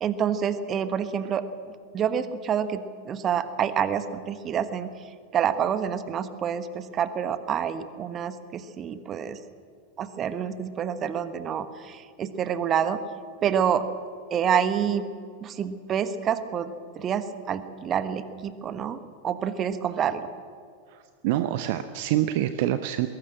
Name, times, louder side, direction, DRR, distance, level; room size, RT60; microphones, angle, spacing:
voice 1, 0.0-1.4 1.9-4.9 5.3-9.4 10.0-13.0 13.4-13.8 14.3-15.1 15.4-19.0 19.2-20.3, right 8 dB, 30° right, 12 dB, 1.4 m, -27 dB
voice 2, 20.9-23.1, right 13 dB, 50° right, 11 dB, 0.8 m, -26 dB
21.0 x 17.5 x 7.8 m, 2.1 s
figure-of-eight pair, 90°, 0 cm